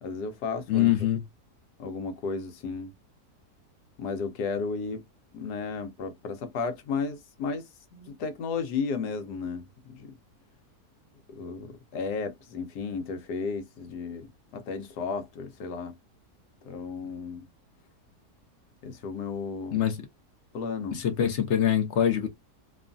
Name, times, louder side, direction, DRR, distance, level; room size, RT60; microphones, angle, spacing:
voice 1, 0.0-0.9 1.8-2.9 4.0-5.0 5.3-7.7 7.9-10.2 11.3-16.0 16.6-17.5 18.8-19.8 20.5-21.0, left 5 dB, 80° left, 1.3 m, -34 dB
voice 2, 0.7-1.2 19.7-20.1 20.9-22.3, left 10 dB, 60° left, 0.7 m, -24 dB
3.0 x 2.4 x 2.4 m
omnidirectional pair, 1.8 m